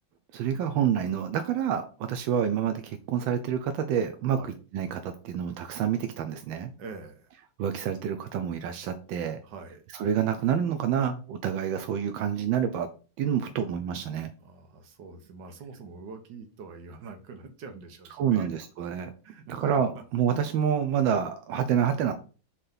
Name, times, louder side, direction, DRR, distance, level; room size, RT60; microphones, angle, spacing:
voice 1, 0.3-4.4 4.7-6.7 7.6-9.4 9.9-12.9 13.2-14.3 18.2-19.1 19.5-22.1, right 8 dB, 90° right, 7 dB, 1.4 m, -28 dB
voice 2, 6.8-7.4 9.4-9.8 14.4-18.5 19.2-19.6 20.0-20.1, right 4 dB, 70° right, 5 dB, 1.8 m, -44 dB
6.7 x 3.3 x 5.6 m, 0.36 s
omnidirectional pair, 2.1 m